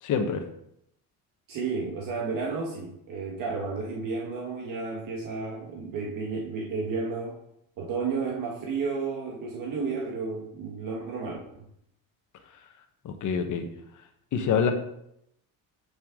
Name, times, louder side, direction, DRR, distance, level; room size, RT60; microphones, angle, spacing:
voice 1, 0.0-0.4 13.0-13.7 14.3-14.7, left 6 dB, 55° left, 6 dB, 1.3 m, -26 dB
voice 2, 1.5-7.4 7.8-11.4, right 4 dB, 60° right, -1 dB, 1.6 m, -32 dB
9.3 x 7.0 x 3.8 m, 0.76 s
cardioid pair, 140°, 37 cm